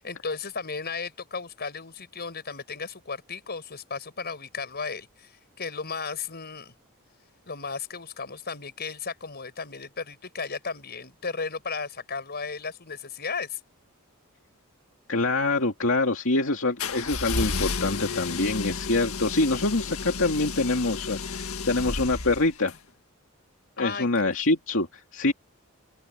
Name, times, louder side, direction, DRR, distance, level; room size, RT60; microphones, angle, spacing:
voice 1, 0.0-6.7 7.5-13.6 23.8-24.1, left 5 dB, 50° left, 6.3 m, -35 dB
voice 2, 15.1-22.7 23.8-25.3, left 2 dB, 65° left, 2.5 m, -25 dB
sound 1, 16.8-22.8, left 4 dB, 80° left, 1.7 m, -32 dB
open air
head